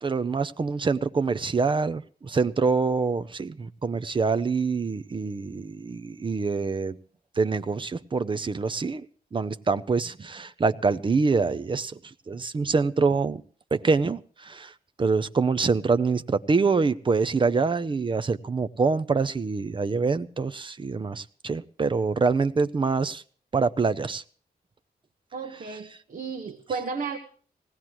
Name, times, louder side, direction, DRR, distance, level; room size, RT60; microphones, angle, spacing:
voice 1, 0.0-7.0 7.4-9.1 9.3-12.0 12.3-13.4 13.7-14.7 15.0-23.2 23.5-24.2, right 4 dB, 30° right, 13 dB, 0.6 m, -25 dB
voice 2, 25.3-27.2, right 5 dB, 55° right, 4 dB, 1.2 m, -33 dB
19.5 x 18.0 x 3.0 m, 0.43 s
wide cardioid pair, 175°, 17 cm